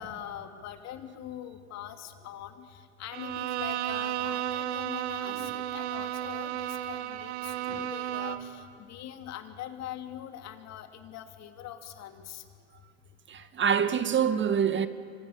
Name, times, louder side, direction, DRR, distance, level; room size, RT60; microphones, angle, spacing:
voice 1, 0.0-12.4, left 10 dB, 50° left, 2.6 m, -43 dB
Bowed string instrument, 3.1-8.6, right 11 dB, 80° right, 1.3 m, -33 dB
voice 2, 13.3-14.9, right 7 dB, 35° right, 1.4 m, -26 dB
29.0 x 25.5 x 7.3 m
hypercardioid pair, 80°, 34 cm